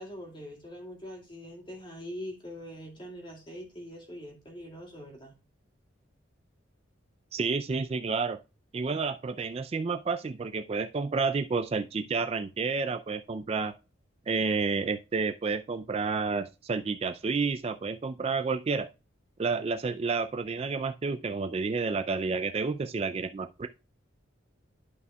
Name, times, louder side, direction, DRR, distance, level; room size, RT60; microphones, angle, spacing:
voice 1, 0.0-5.3, equal, 25° left, 2.3 m, -43 dB
voice 2, 7.3-8.4 8.7-13.7 14.3-18.9 19.4-23.7, right 4 dB, 30° right, 0.3 m, -30 dB
11.5 x 5.5 x 2.2 m
head